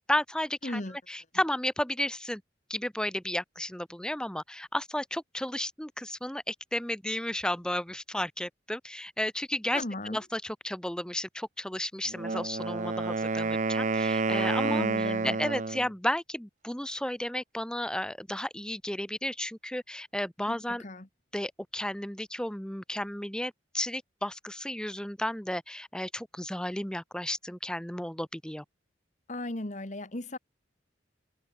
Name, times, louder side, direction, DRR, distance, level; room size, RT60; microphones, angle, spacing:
voice 1, 0.0-2.4 2.7-20.8 21.3-28.6, left 1 dB, 5° left, 1.0 m, -33 dB
voice 2, 0.6-1.0 9.7-10.2 14.6-15.4 20.5-21.1 29.3-30.4, left 1 dB, 40° left, 1.7 m, -36 dB
Wind instrument woodwind instrument, 12.1-15.9, right 3 dB, 40° right, 0.7 m, -29 dB
head